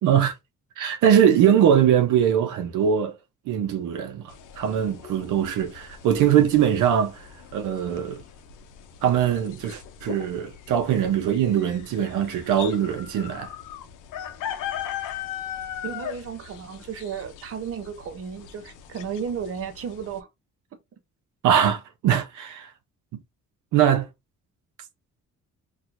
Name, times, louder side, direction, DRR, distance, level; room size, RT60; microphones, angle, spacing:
voice 1, 0.0-0.3 0.8-3.1 3.5-7.2 7.5-8.2 9.0-13.5 21.4-22.7 23.7-24.1, right 9 dB, 85° right, 0.7 m, -21 dB
sound 1, 4.3-20.2, left 10 dB, 85° left, 0.6 m, -39 dB
voice 2, 15.8-20.3, right 7 dB, 50° right, 0.7 m, -34 dB
4.3 x 2.5 x 2.5 m
cardioid pair, 90°, 30 cm